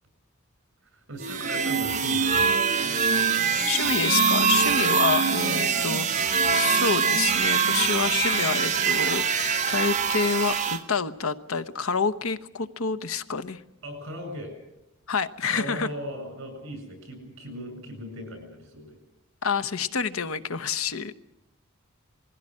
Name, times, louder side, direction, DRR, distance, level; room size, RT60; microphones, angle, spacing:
voice 1, 0.9-2.8 13.8-14.5 15.5-19.0, equal, 60° right, 7 dB, 7.6 m, -38 dB
sound 1, 1.2-10.8, right 5 dB, 35° right, 1.2 m, -23 dB
voice 2, 3.7-13.6 15.1-15.9 19.4-21.1, left 5 dB, 80° left, 13 dB, 1.0 m, -28 dB
20.5 x 16.0 x 9.8 m, 0.86 s
head